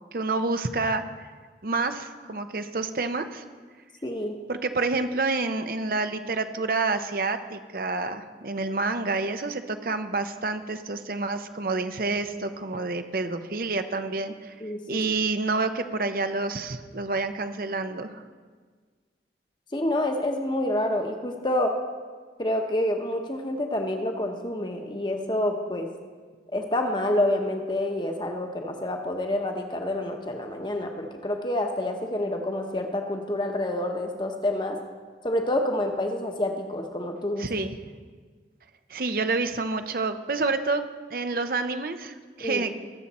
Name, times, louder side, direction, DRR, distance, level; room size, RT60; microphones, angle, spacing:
voice 1, 0.1-1.0 1.6-3.4 4.5-14.5 14.9-18.2 37.4-37.8 38.9-40.8 41.1-42.7, right 3 dB, 50° right, 8 dB, 0.7 m, -28 dB
voice 2, 4.0-4.3 14.6-15.0 19.7-21.8 22.4-25.9 26.5-34.8 35.2-37.5 42.4-42.6, left 1 dB, 25° left, 4 dB, 1.0 m, -28 dB
20.5 x 7.3 x 4.2 m, 1.5 s
head